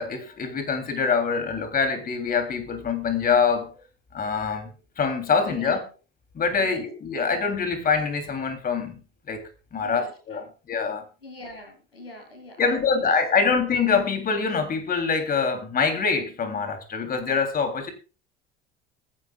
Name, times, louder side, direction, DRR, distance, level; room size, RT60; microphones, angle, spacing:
voice 1, 0.0-3.7 4.1-5.8 6.3-9.0 9.3-9.4 9.7-11.0 12.6-17.9, left 5 dB, 30° left, 7 dB, 3.2 m, -25 dB
voice 2, 5.4-5.9 6.6-6.8 9.8-10.5 11.2-13.6, left 1 dB, 80° left, 5 dB, 2.5 m, -43 dB
23.5 x 10.5 x 2.4 m, 0.34 s
figure-of-eight pair, 65°, 29 cm